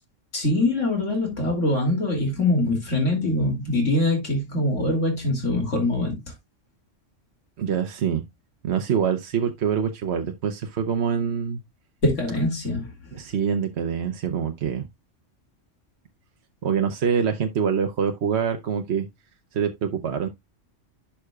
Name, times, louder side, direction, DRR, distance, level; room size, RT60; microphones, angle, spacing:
voice 1, 0.3-6.2 12.0-12.9, left 2 dB, 80° left, 3.1 m, -23 dB
voice 2, 7.6-8.2 8.6-11.6 13.1-14.9 16.6-19.1 19.5-20.3, right 7 dB, 65° right, 1.1 m, -25 dB
11.0 x 5.8 x 2.3 m
omnidirectional pair, 1.3 m